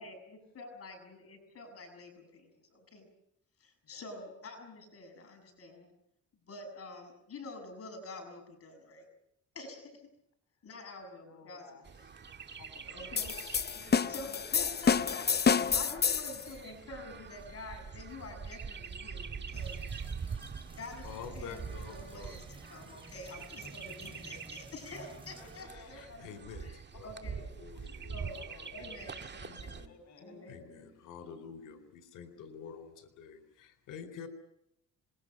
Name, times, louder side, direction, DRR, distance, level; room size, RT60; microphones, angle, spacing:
voice 1, 0.0-3.1 3.6-5.9 6.5-9.1 9.5-10.0 10.6-11.8 12.9-13.3 14.1-15.2 15.7-20.1 20.7-26.2 26.6-26.8 27.0-27.4 27.9-28.4 28.7-29.2 29.4-29.8 30.2-30.7, left 2 dB, 50° left, 5 dB, 7.1 m, -47 dB
voice 2, 11.3-13.2 13.5-16.0 16.7-16.9 25.3-25.9 26.2-26.5 26.9-27.4 27.7-28.1 28.3-29.2 29.9-30.4, left 3 dB, 65° left, 5 dB, 6.5 m, -56 dB
Chirp tweet, 11.8-29.9, right 6 dB, 35° right, 1.8 m, -45 dB
sound 1, 13.2-16.4, left 6 dB, 35° left, 0.8 m, -28 dB
sound 2, 19.5-25.6, right 2 dB, 15° right, 5.8 m, -53 dB
voice 3, 21.0-22.4 23.3-23.7 24.1-24.7 25.0-25.1 25.4-25.5 25.9-27.3 27.6-28.7 29.4-29.9 30.5-34.3, left 6 dB, 85° left, 8 dB, 4.0 m, -49 dB
26.5 x 22.0 x 6.7 m, 0.79 s
cardioid pair, 90°, 30 cm